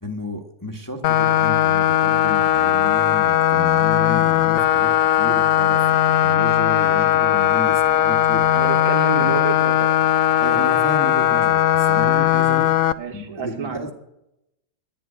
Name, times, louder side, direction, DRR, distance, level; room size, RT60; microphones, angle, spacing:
voice 1, 0.0-5.8 6.2-8.7 10.4-12.7 13.1-13.9, left 1 dB, 10° left, 3 dB, 1.1 m, -32 dB
sound 1, 1.0-12.9, left 11 dB, 70° left, 0.8 m, -18 dB
voice 2, 8.5-10.0 13.0-13.9, right 7 dB, 90° right, -1 dB, 2.2 m, -29 dB
11.0 x 9.5 x 9.8 m, 0.83 s
omnidirectional pair, 2.0 m